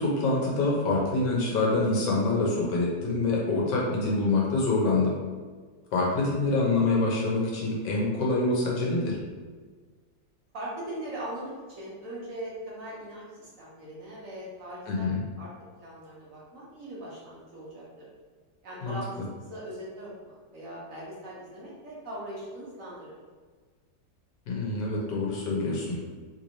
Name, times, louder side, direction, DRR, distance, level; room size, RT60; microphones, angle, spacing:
voice 1, 0.0-5.1 5.9-9.2 14.9-15.2 18.8-19.0 24.5-26.0, left 2 dB, 80° left, -4 dB, 1.5 m, -26 dB
voice 2, 10.5-15.1 15.4-15.5 15.8-18.0 18.6-23.1, right 1 dB, 55° right, -6 dB, 1.1 m, -40 dB
3.5 x 3.0 x 2.6 m, 1.5 s
omnidirectional pair, 1.9 m